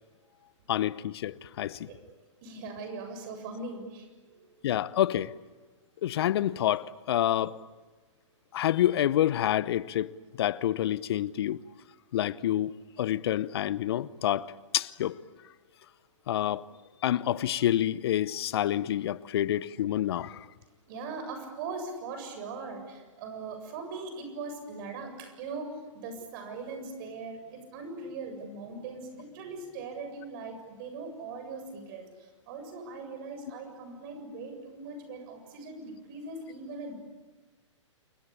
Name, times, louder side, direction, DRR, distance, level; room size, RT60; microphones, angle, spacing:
voice 1, 0.7-1.9 4.6-5.3 6.0-7.5 8.5-10.1 10.4-11.6 12.1-12.7 13.0-15.1 16.3-16.7 17.0-20.4, left 12 dB, 50° left, 0.9 m, -28 dB
voice 2, 2.4-4.5 20.9-37.0, right 3 dB, 40° right, 7.3 m, -40 dB
28.5 x 22.0 x 8.7 m
figure-of-eight pair, 125°, 16 cm